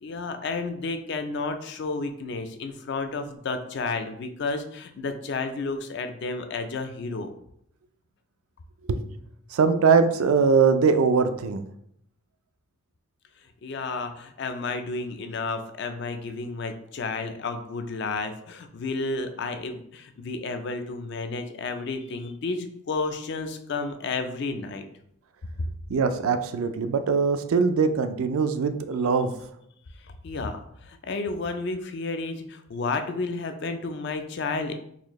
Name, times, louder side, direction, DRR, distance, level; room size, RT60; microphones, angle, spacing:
voice 1, 0.0-7.3 13.6-24.8 30.2-34.7, left 3 dB, 50° left, 7 dB, 0.4 m, -31 dB
voice 2, 9.5-11.7 25.9-29.3, right 5 dB, 80° right, 10 dB, 0.4 m, -22 dB
4.2 x 2.6 x 3.0 m, 0.71 s
head